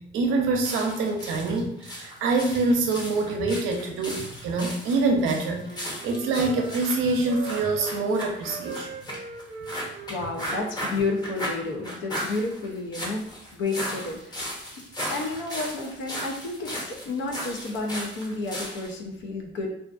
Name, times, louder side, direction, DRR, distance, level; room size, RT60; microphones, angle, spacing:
voice 1, 0.1-8.9, right 3 dB, 90° right, 2 dB, 0.6 m, -25 dB
sound 1, 0.6-18.9, equal, 20° left, 0.8 m, -36 dB
Wind instrument woodwind instrument, 5.3-7.9 8.4-11.6, right 5 dB, 40° right, 0.6 m, -41 dB
voice 2, 10.1-13.3 13.5-14.5 15.1-19.7, left 3 dB, 70° left, 1 dB, 0.6 m, -31 dB
2.5 x 2.4 x 2.4 m, 0.78 s
cardioid pair, 90°, 20 cm